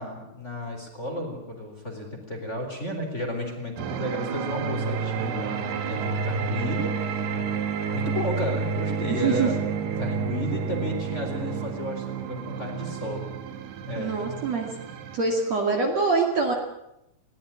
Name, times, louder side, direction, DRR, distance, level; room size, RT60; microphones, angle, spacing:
voice 1, 0.0-7.3 7.9-9.5 10.0-13.2 13.9-14.2, left 1 dB, 15° left, 2 dB, 4.2 m, -33 dB
sound 1, 3.8-15.2, right 6 dB, 85° right, 3.9 m, -30 dB
voice 2, 9.1-9.5 14.0-14.7 15.1-16.5, right 4 dB, 45° right, 1 dB, 3.3 m, -24 dB
21.0 x 18.5 x 8.6 m, 0.82 s
omnidirectional pair, 4.5 m